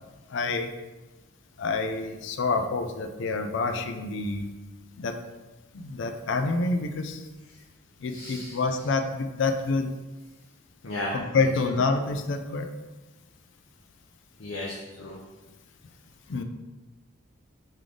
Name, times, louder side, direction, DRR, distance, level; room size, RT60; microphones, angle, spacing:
voice 1, 0.3-0.7 1.6-4.5 5.0-5.2 5.7-7.2 8.0-9.9 11.1-12.7 16.3-16.4, left 3 dB, 60° left, 7 dB, 0.4 m, -27 dB
voice 2, 8.1-8.6 10.8-11.1 14.4-15.2, left 1 dB, 75° left, -5 dB, 0.7 m, -35 dB
3.7 x 3.3 x 3.7 m, 1.2 s
head